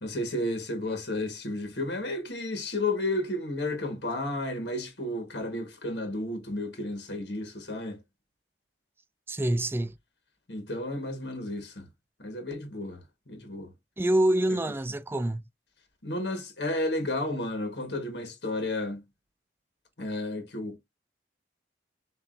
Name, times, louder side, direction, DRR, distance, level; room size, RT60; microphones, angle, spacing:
voice 1, 0.0-8.0 10.5-11.9 12.2-13.7 16.0-19.0 20.0-20.8, left 1 dB, 65° left, 1.6 m, -32 dB
voice 2, 9.3-10.0 14.0-15.4, right 1 dB, 15° right, 0.3 m, -26 dB
6.9 x 2.7 x 2.6 m
head